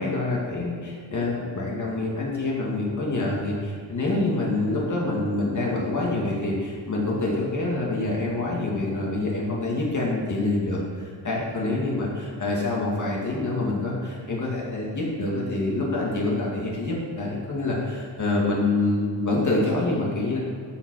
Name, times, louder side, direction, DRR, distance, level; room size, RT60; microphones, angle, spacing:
voice 1, 0.0-20.4, left 2 dB, 35° left, -4 dB, 2.1 m, -26 dB
13.5 x 5.1 x 6.2 m, 2.2 s
wide cardioid pair, 145°, 48 cm